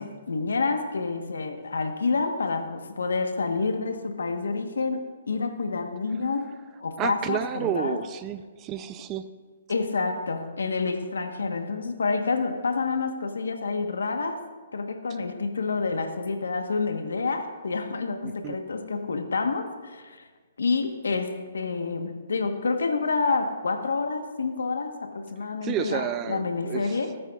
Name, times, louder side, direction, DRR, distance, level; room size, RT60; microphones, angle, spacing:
voice 1, 0.0-8.0 9.7-14.4 14.7-20.3 20.6-27.2, left 4 dB, 90° left, 6 dB, 1.1 m, -28 dB
voice 2, 7.0-9.3 18.2-18.6 25.6-27.0, right 9 dB, 20° right, 11 dB, 0.4 m, -31 dB
18.0 x 9.1 x 2.4 m, 1.4 s
hypercardioid pair, 150°, 0 cm